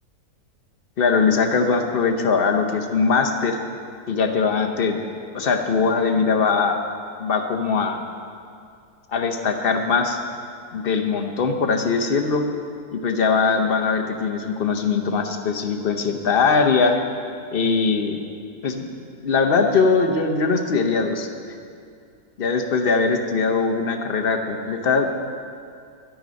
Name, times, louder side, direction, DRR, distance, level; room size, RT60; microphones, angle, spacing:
voice 1, 1.0-3.6 4.1-5.0 5.3-6.8 7.2-8.0 9.1-10.2 10.7-12.4 12.9-17.0 17.5-18.2 18.6-18.8 19.2-21.3 22.4-25.2, left 5 dB, 50° left, 4 dB, 0.7 m, -21 dB
12.5 x 8.9 x 5.2 m, 2.4 s
omnidirectional pair, 1.8 m